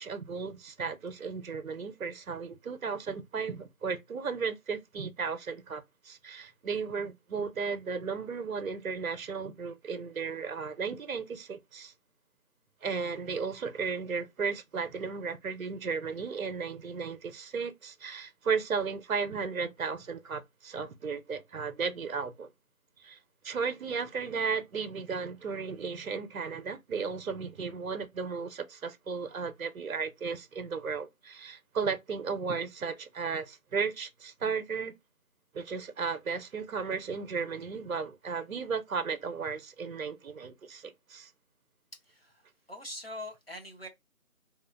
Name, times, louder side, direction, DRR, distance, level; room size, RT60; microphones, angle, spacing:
voice 1, 0.0-11.9 12.8-22.5 23.0-23.2 23.4-34.9 35.5-41.3, right 5 dB, 70° right, 0.6 m, -35 dB
voice 2, 41.9-43.9, left 1 dB, 45° left, 0.6 m, -43 dB
2.7 x 2.1 x 2.3 m
figure-of-eight pair, 175°, 43 cm